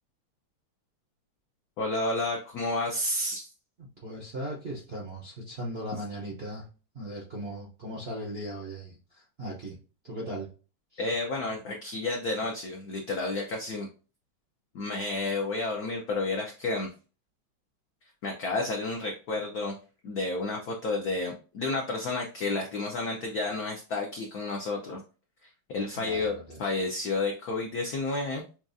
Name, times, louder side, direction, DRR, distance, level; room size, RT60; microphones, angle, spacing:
voice 1, 1.8-3.5 11.0-13.9 14.7-16.9 18.2-19.8 20.0-25.0 25.4-28.4, left 2 dB, 80° left, 1 dB, 0.8 m, -31 dB
voice 2, 4.0-6.7 6.9-9.8 10.0-10.5 10.9-11.0 26.0-26.7, right 1 dB, 70° right, -3 dB, 0.5 m, -38 dB
5.9 x 2.3 x 2.6 m, 0.35 s
omnidirectional pair, 2.4 m